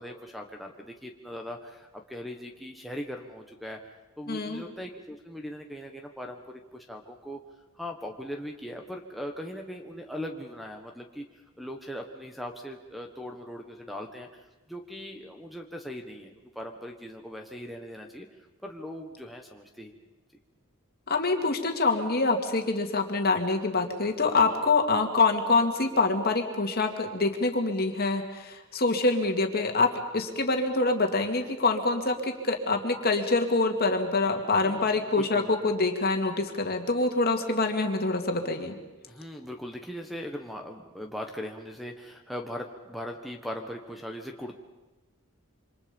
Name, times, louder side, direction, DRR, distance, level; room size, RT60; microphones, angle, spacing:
voice 1, 0.0-3.8 4.2-7.4 7.8-19.9 34.6-35.7 39.1-44.6, equal, ahead, 4 dB, 1.4 m, -40 dB
voice 2, 4.3-4.6 21.1-29.9 30.1-38.8, left 3 dB, 45° left, 4 dB, 2.5 m, -25 dB
27.5 x 25.5 x 5.4 m, 1.1 s
head